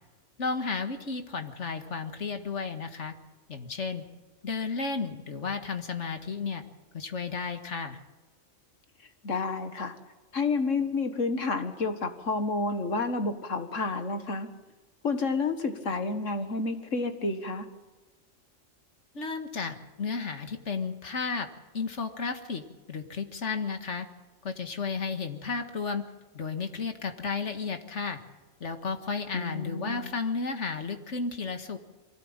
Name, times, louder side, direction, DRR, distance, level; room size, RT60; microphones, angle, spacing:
voice 1, 0.4-3.1 3.5-4.0 4.4-6.6 6.9-8.0 19.1-21.5 21.7-24.1 24.4-26.0 26.3-28.2 28.6-31.8, left 4 dB, 70° left, 7 dB, 2.0 m, -33 dB
voice 2, 9.2-9.9 10.3-14.5 15.0-17.7 29.3-30.1, left 3 dB, 85° left, 8 dB, 2.0 m, -30 dB
24.0 x 16.5 x 8.9 m, 1.2 s
omnidirectional pair, 1.3 m